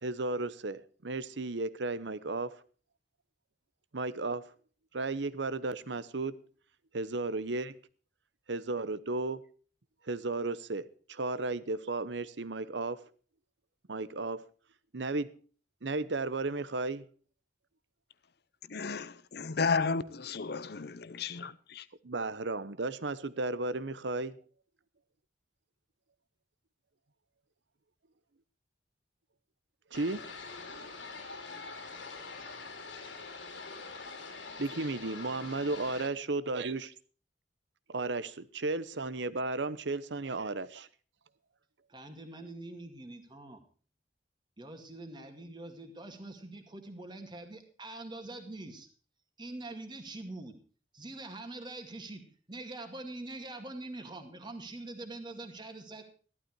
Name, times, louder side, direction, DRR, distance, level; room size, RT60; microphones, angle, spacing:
voice 1, 0.0-2.6 3.9-4.5 4.9-6.4 6.9-7.7 8.5-9.4 10.1-13.0 13.9-14.4 14.9-15.3 15.8-17.1 22.0-24.3 29.9-30.3 34.6-36.9 37.9-40.9, right 3 dB, 75° right, 0.9 m, -34 dB
voice 2, 18.7-21.8, left 4 dB, 60° left, 0.8 m, -33 dB
sound 1, 29.9-36.1, left 4 dB, 90° left, 3.0 m, -44 dB
voice 3, 41.9-43.6 44.6-48.9 49.4-50.5 50.9-56.0, right 2 dB, 25° right, 2.2 m, -44 dB
14.5 x 12.0 x 4.6 m
head